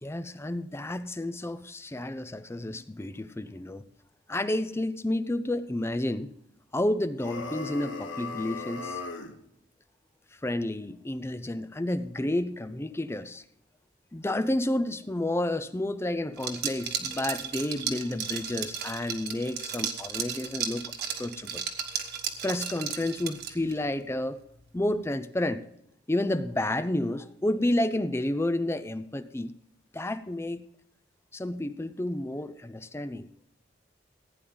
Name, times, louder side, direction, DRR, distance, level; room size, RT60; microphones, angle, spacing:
voice 1, 0.0-3.8 4.3-6.3 6.7-9.0 10.4-13.4 14.1-20.9 21.2-21.6 22.4-24.4 24.7-25.6 26.1-29.5 29.9-30.7 31.3-33.3, left 1 dB, 15° left, 13 dB, 0.5 m, -30 dB
sound 1, 7.2-9.4, left 3 dB, 90° left, 1.2 m, -37 dB
Liquid, 16.4-23.8, right 7 dB, 60° right, 1.4 m, -34 dB
16.0 x 9.4 x 3.9 m, 0.74 s
head